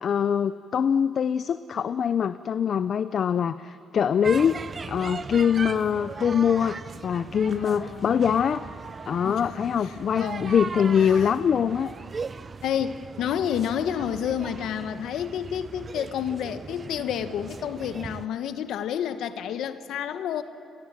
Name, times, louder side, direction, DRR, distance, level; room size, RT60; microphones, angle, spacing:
voice 1, 0.0-4.6 4.9-8.7 9.1-11.9, left 8 dB, 55° left, 13 dB, 0.6 m, -23 dB
sound 1, 4.2-18.3, right 5 dB, 35° right, 0.5 m, -38 dB
voice 2, 7.4-8.2 9.2-10.6 10.9-11.3 12.6-20.4, left 9 dB, 80° left, 11 dB, 1.1 m, -30 dB
29.5 x 20.0 x 7.4 m, 2.5 s
cardioid pair, 90°, 0 cm